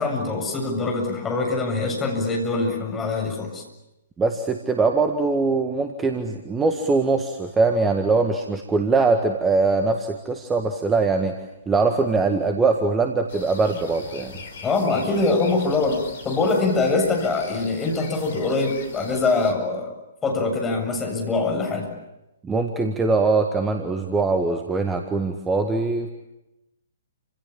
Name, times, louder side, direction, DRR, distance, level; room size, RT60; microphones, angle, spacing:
voice 1, 0.0-3.6 14.6-16.0 16.2-19.9 20.2-21.9, left 3 dB, 15° left, 1 dB, 7.6 m, -23 dB
voice 2, 4.2-11.4 11.7-14.3 22.4-26.1, right 3 dB, 10° right, 5 dB, 1.8 m, -22 dB
sound 1, 13.3-19.5, left 4 dB, 55° left, 5.1 m, -41 dB
30.0 x 27.0 x 7.4 m, 0.93 s
figure-of-eight pair, 120°, 0 cm